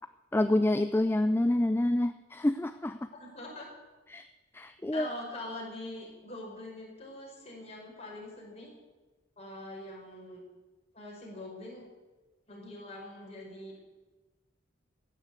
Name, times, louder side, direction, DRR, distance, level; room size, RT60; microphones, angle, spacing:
voice 1, 0.3-3.1 4.1-4.3 4.5-5.1, left 1 dB, 10° left, 10 dB, 0.4 m, -27 dB
voice 2, 3.1-3.7 4.9-8.7 9.4-10.4 10.9-11.8 12.5-13.8, left 1 dB, 35° left, -2 dB, 5.0 m, -43 dB
15.5 x 10.0 x 8.4 m, 1.2 s
head